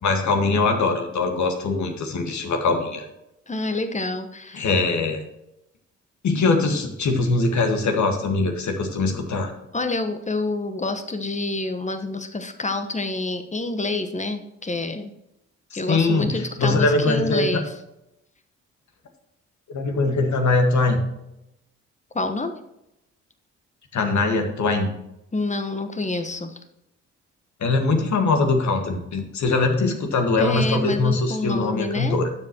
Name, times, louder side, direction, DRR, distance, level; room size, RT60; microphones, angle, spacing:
voice 1, 0.0-3.0 4.5-5.2 6.2-9.5 15.7-17.5 19.7-21.0 23.9-24.9 27.6-32.3, left 3 dB, 55° left, 4 dB, 1.7 m, -22 dB
voice 2, 3.5-4.7 9.7-15.1 15.7-17.7 22.1-22.5 25.3-26.6 30.4-32.2, left 2 dB, 20° left, 8 dB, 1.2 m, -27 dB
12.5 x 7.5 x 3.0 m, 0.85 s
hypercardioid pair, 45°, 35 cm